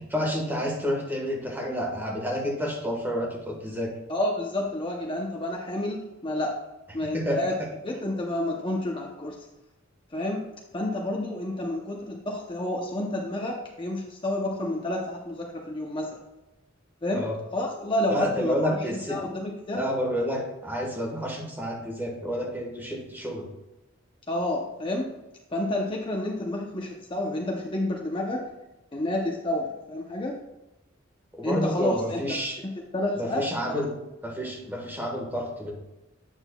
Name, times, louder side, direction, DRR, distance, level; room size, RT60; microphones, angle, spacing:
voice 1, 0.1-3.9 7.0-7.7 17.1-17.3 18.1-19.2 19.7-23.5 31.3-32.6 33.2-33.9 34.2-35.7, equal, 10° right, -1 dB, 1.4 m, -29 dB
voice 2, 4.1-6.6 6.9-7.5 7.8-9.4 10.1-10.4 10.7-16.2 17.0-17.2 17.5-18.8 19.1-19.8 24.3-25.1 25.5-28.4 28.9-30.3 31.4-32.2 32.6-33.8, left 1 dB, 25° left, 0 dB, 0.7 m, -29 dB
8.8 x 6.3 x 2.3 m, 0.99 s
head